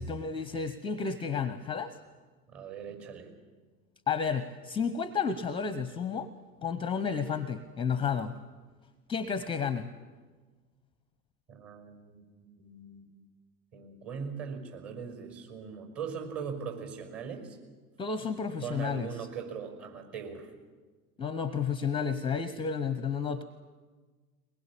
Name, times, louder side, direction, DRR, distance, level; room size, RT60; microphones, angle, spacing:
voice 1, 0.0-2.0 4.1-6.3 6.6-8.4 9.1-9.9 18.0-19.1 21.2-23.4, left 6 dB, 10° left, 14 dB, 0.7 m, -31 dB
voice 2, 2.5-3.3 11.5-13.2 13.7-17.5 18.6-20.5, right 6 dB, 35° right, 4 dB, 5.8 m, -40 dB
22.0 x 20.5 x 8.7 m, 1.4 s
figure-of-eight pair, 90°, 45 cm